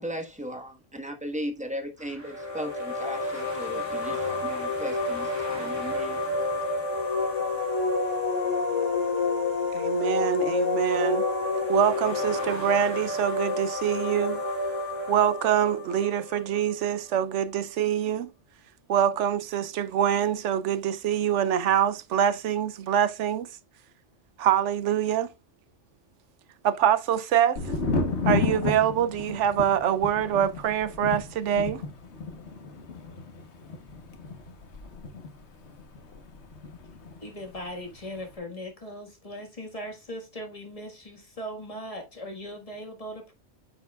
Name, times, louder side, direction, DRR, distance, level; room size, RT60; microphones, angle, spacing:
voice 1, 0.0-6.2, equal, 5° right, 1.3 m, -36 dB
sound 1, 2.0-15.2, right 1 dB, 15° left, 2.8 m, -44 dB
sound 2, 2.2-16.9, left 3 dB, 85° left, 2.6 m, -29 dB
voice 2, 9.7-11.2 11.7-14.4 15.1-18.3 18.9-23.5 24.4-25.3 26.6-27.6 28.3-31.8, right 9 dB, 75° right, 0.9 m, -25 dB
Thunder, 27.6-37.2 37.5-38.2, left 4 dB, 65° left, 1.4 m, -32 dB
voice 3, 37.2-43.3, equal, 30° left, 1.7 m, -39 dB
8.8 x 6.9 x 2.3 m
omnidirectional pair, 1.2 m